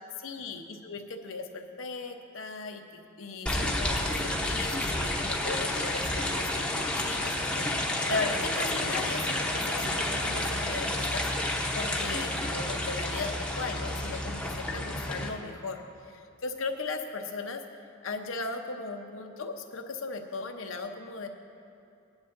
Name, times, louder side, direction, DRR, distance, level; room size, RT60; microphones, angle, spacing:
voice 1, 0.2-2.8 3.2-17.6 18.0-21.3, left 3 dB, 75° left, 4 dB, 0.9 m, -37 dB
sound 1, 3.5-15.3, left 1 dB, 5° left, 0.9 m, -30 dB
19.5 x 10.5 x 2.6 m, 2.6 s
head